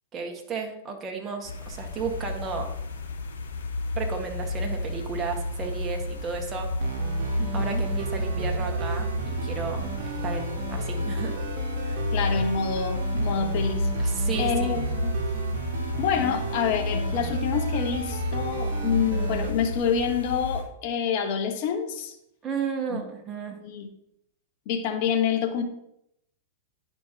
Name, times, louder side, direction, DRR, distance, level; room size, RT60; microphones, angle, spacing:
voice 1, 0.1-2.7 3.9-6.7 7.5-9.8 10.2-11.3 11.8-12.0 14.0-14.8 22.4-23.6, right 5 dB, 25° right, 2 dB, 1.6 m, -33 dB
sound 1, 1.4-20.6, left 2 dB, 70° left, 1.8 m, -32 dB
sound 2, 6.8-19.5, right 3 dB, 60° right, 1.3 m, -31 dB
voice 2, 7.4-7.8 12.1-13.9 14.4-15.1 16.0-22.1 22.9-23.0 23.6-23.9 24.7-25.6, left 7 dB, 50° left, 5 dB, 1.1 m, -27 dB
10.5 x 5.2 x 2.9 m, 0.78 s
hypercardioid pair, 105°, 0 cm